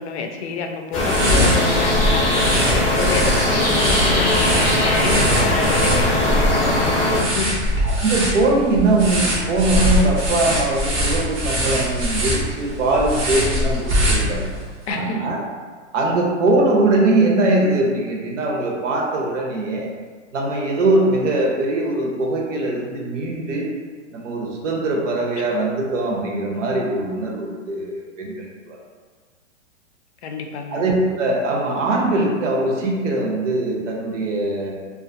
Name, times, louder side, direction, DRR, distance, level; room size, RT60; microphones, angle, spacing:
voice 1, 0.0-7.6 14.9-15.3 16.0-16.2 30.2-30.8, left 4 dB, 65° left, 4 dB, 0.5 m, -28 dB
sound 1, 0.9-7.2, left 1 dB, 20° left, 0.6 m, -20 dB
sound 2, 1.0-14.7, equal, 25° right, 0.4 m, -22 dB
voice 2, 7.8-14.4 14.9-15.4 15.9-19.9 20.3-23.7 24.1-28.8 30.7-34.7, right 2 dB, 85° right, -1 dB, 0.8 m, -21 dB
2.5 x 2.4 x 2.5 m, 1.5 s
hypercardioid pair, 150°, 37 cm